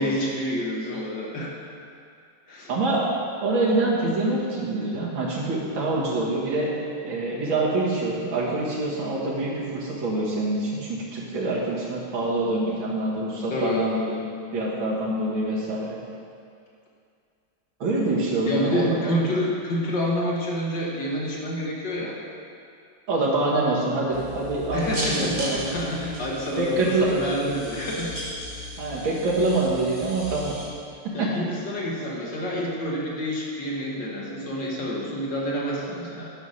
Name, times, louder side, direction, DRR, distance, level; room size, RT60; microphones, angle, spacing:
voice 1, 0.0-1.5 2.5-2.7 13.5-13.8 18.5-22.2 24.7-28.1 31.1-36.3, left 1 dB, 60° left, -3 dB, 1.9 m, -28 dB
voice 2, 2.7-3.1 3.4-6.7 7.0-14.2 14.5-16.0 17.8-19.2 23.1-25.6 26.6-27.1 28.8-30.5 31.2-31.3, right 2 dB, 80° right, -6 dB, 2.5 m, -25 dB
sound 1, 24.1-30.7, equal, 25° right, 1.8 m, -35 dB
11.0 x 5.5 x 6.4 m, 2.4 s
omnidirectional pair, 2.2 m